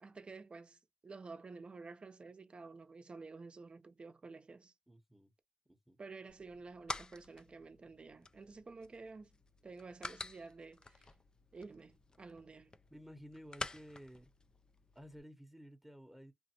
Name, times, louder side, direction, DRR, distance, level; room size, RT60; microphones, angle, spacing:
voice 1, 0.0-4.7 6.0-9.3 9.6-11.1 11.5-12.7, right 4 dB, 45° right, 0.6 m, -51 dB
voice 2, 4.9-5.3 5.7-6.0 12.9-14.3 14.9-16.3, equal, 5° right, 0.9 m, -54 dB
sound 1, 6.3-15.2, left 3 dB, 30° left, 0.4 m, -49 dB
3.1 x 2.1 x 2.9 m
cardioid pair, 70°, 3 cm